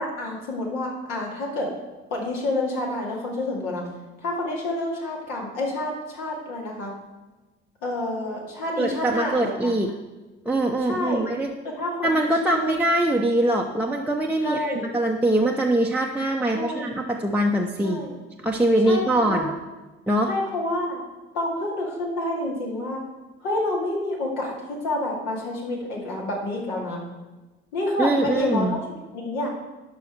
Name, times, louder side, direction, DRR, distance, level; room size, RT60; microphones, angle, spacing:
voice 1, 0.0-1.7 2.1-3.9 4.2-6.9 7.8-9.7 10.8-11.3 11.6-12.7 14.4-14.8 16.4-16.9 17.8-18.2 18.9-19.5 20.3-21.0 21.3-23.0 23.4-27.0 27.7-28.8 29.1-29.5, left 1 dB, 65° left, -2 dB, 2.3 m, -28 dB
voice 2, 8.8-9.9 10.4-11.5 12.0-18.0 18.4-19.5 20.1-20.3 28.0-28.8, right 1 dB, 5° right, -1 dB, 0.7 m, -23 dB
12.0 x 5.5 x 4.6 m, 1.2 s
figure-of-eight pair, 50°, 34 cm